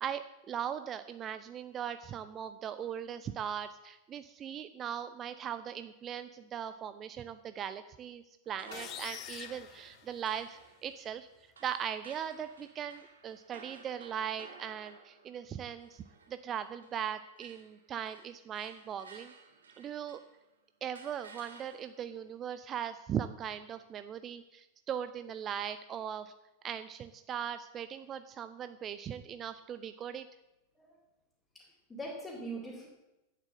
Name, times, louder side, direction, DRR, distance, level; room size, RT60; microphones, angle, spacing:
voice 1, 0.0-11.3 11.6-16.0 16.3-19.3 19.8-20.2 20.8-26.3 26.6-30.3, right 9 dB, 30° right, 11 dB, 0.5 m, -39 dB
sound 1, 8.4-17.1 17.4-20.4 20.9-22.1, right 4 dB, 70° right, 1.7 m, -55 dB
sound 2, 8.7-10.7, left 13 dB, 35° left, 0.5 m, -46 dB
voice 2, 31.5-32.9, right 1 dB, 15° left, -5 dB, 2.8 m, -42 dB
8.9 x 7.6 x 7.3 m, 0.96 s
figure-of-eight pair, 90°, 0 cm